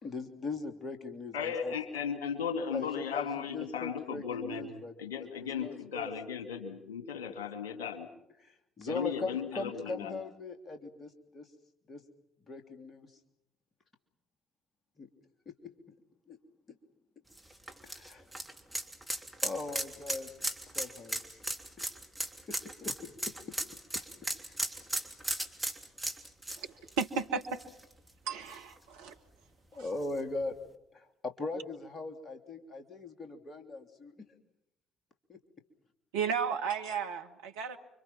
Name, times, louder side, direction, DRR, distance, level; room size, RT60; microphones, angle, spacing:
voice 1, 0.0-1.7 2.7-2.9 3.1-4.9 5.2-6.1 8.4-11.5 11.9-12.0 12.5-13.1 15.0-15.1 15.4-15.5 16.3-16.4 17.8-18.2 19.4-20.3 20.7-21.4 22.5-23.3 29.7-30.6 30.9-34.2 35.3-35.4, left 3 dB, 35° left, 6 dB, 3.2 m, -40 dB
voice 2, 1.3-8.1 8.9-10.2, left 7 dB, 75° left, 6 dB, 2.4 m, -36 dB
sound 1, 17.3-28.1 28.5-28.6 30.0-30.1, right 1 dB, 5° right, 3.1 m, -36 dB
voice 3, 27.0-27.6 28.3-29.1 29.7-29.8 36.1-37.8, right 6 dB, 70° right, 5 dB, 1.4 m, -34 dB
30.0 x 24.5 x 5.9 m, 0.82 s
figure-of-eight pair, 50°, 0 cm